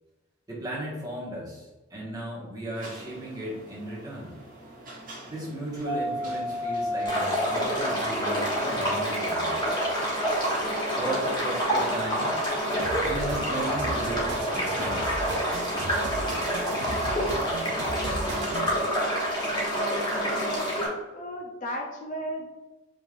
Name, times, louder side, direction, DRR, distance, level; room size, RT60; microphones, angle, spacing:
voice 1, 0.5-4.4 5.3-9.7 10.9-12.3 13.0-15.0, right 1 dB, 20° right, -7 dB, 1.5 m, -36 dB
sound 1, 2.7-17.5, left 1 dB, 45° right, 1.2 m, -37 dB
sound 2, 7.0-20.9, equal, 20° left, 1.1 m, -27 dB
sound 3, 12.8-18.8, right 2 dB, 60° right, 0.5 m, -37 dB
voice 2, 20.4-22.5, equal, 40° left, 1 dB, 0.5 m, -35 dB
4.9 x 3.3 x 2.5 m, 1.1 s
head